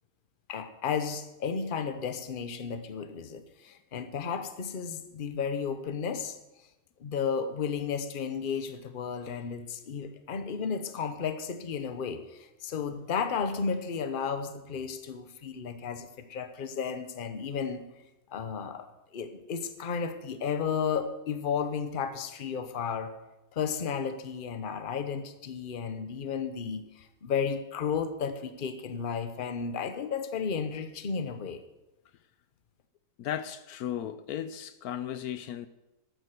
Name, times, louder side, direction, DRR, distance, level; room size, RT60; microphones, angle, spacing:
voice 1, 0.5-6.4 7.0-17.9 18.3-18.9 19.1-23.1 23.5-31.6, left 6 dB, 40° left, 1.0 m, -33 dB
voice 2, 33.2-35.7, left 10 dB, 75° left, 1.1 m, -35 dB
12.5 x 9.1 x 6.8 m
omnidirectional pair, 1.6 m